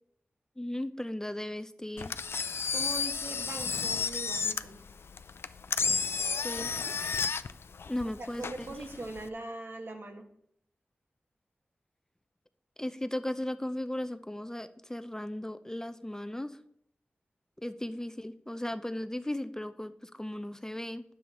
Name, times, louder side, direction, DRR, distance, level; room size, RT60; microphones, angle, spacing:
voice 1, 0.6-2.1 6.4-6.9 7.9-8.8 12.8-16.6 17.6-21.0, left 1 dB, 15° left, 11 dB, 0.5 m, -36 dB
Engine, 2.0-9.3, left 5 dB, 75° left, 0.4 m, -32 dB
voice 2, 2.7-4.8 8.2-10.3, right 2 dB, 60° right, 4 dB, 1.3 m, -41 dB
9.4 x 7.0 x 3.7 m, 0.72 s
cardioid pair, 45°, 4 cm